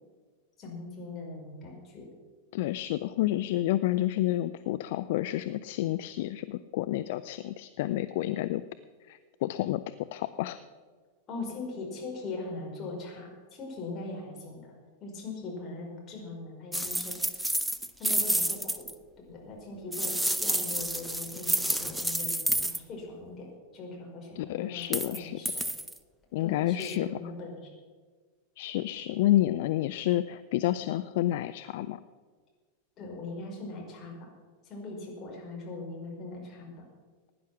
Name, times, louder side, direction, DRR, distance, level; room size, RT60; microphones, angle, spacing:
voice 1, 0.6-2.1 11.3-14.7 15.0-17.4 18.0-18.9 19.3-25.6 26.4-27.7 33.0-34.3 34.6-36.7, left 3 dB, 30° left, -1 dB, 5.1 m, -40 dB
voice 2, 2.5-8.6 9.1-9.8 10.1-10.6 24.4-25.4 26.3-27.1 28.6-32.0, left 14 dB, 50° left, 12 dB, 0.5 m, -29 dB
sound 1, 16.7-18.9 19.9-22.8 24.8-25.2 25.5-26.0 26.8-27.0, right 1 dB, 5° right, 0.8 m, -29 dB
17.0 x 10.5 x 6.0 m, 1.5 s
figure-of-eight pair, 90°, 0 cm